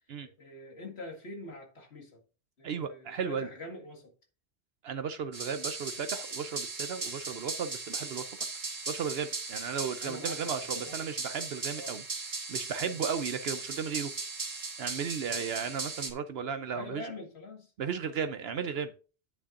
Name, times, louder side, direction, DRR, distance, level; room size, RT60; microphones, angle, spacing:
voice 1, 0.2-2.2 2.6-4.1 10.0-11.1 11.8-12.0 12.9-13.1 15.3-15.5 16.7-17.7, left 2 dB, 80° left, 2.1 m, -45 dB
voice 2, 2.6-3.5 4.8-8.4 8.9-12.0 12.5-14.1 14.8-17.1 17.8-18.9, right 6 dB, 70° right, 0.9 m, -35 dB
sound 1, 5.3-16.1, right 3 dB, 50° right, 2.0 m, -38 dB
9.5 x 8.6 x 2.5 m
omnidirectional pair, 1.1 m